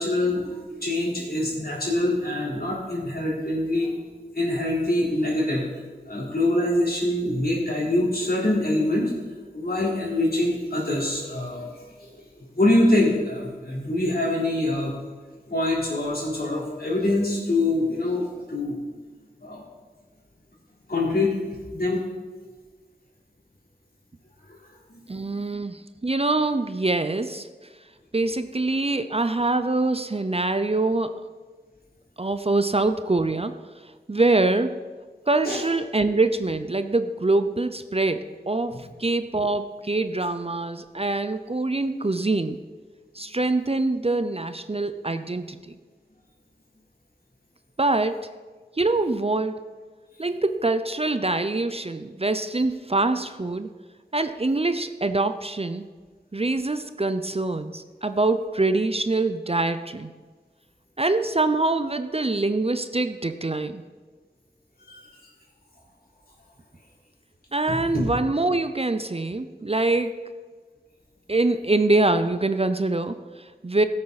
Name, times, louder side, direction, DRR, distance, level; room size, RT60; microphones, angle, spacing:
voice 1, 0.0-3.9 4.3-5.7 6.1-9.1 9.5-11.7 12.0-12.1 12.6-14.9 15.5-18.8 19.4-19.6 20.9-21.4 21.7-22.0 24.9-25.5 35.4-35.6 64.9-65.0 67.7-68.0, left 1 dB, 60° left, -4 dB, 3.6 m, -24 dB
voice 2, 25.1-27.5 28.1-31.1 32.2-34.8 35.3-42.6 43.1-45.8 47.8-48.3 48.8-49.7 50.2-53.7 54.1-55.9 56.3-60.1 61.0-63.8 67.5-70.3 71.3-73.8, right 2 dB, 35° right, 10 dB, 0.6 m, -24 dB
16.5 x 8.7 x 4.1 m, 1.4 s
wide cardioid pair, 55°, 18 cm